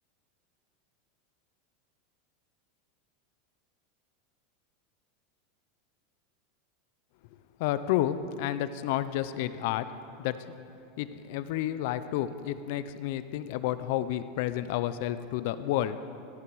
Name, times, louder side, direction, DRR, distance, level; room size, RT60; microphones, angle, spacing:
voice 1, 7.6-9.9 10.2-10.4 11.0-16.0, left 12 dB, 60° left, 13 dB, 0.4 m, -30 dB
15.0 x 6.7 x 4.7 m, 2.5 s
supercardioid pair, 145°, 0 cm